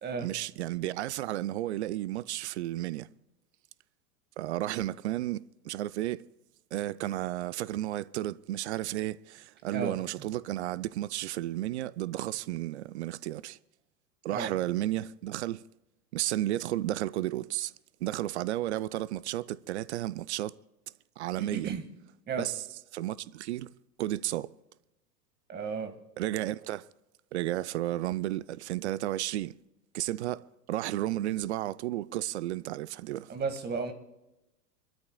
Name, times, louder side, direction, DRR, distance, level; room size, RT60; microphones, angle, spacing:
voice 1, 0.2-3.1 4.4-6.3 6.7-13.6 14.2-15.6 16.1-17.7 18.0-20.6 21.2-21.7 22.4-22.6 22.9-23.7 24.0-24.5 26.2-26.9 27.3-29.6 29.9-33.3, right 14 dB, 45° right, 0.5 m, -33 dB
voice 2, 21.4-21.8 22.3-22.5 25.5-25.9 33.3-33.9, right 5 dB, 20° right, 1.7 m, -33 dB
28.0 x 13.0 x 2.3 m
figure-of-eight pair, 95°, 49 cm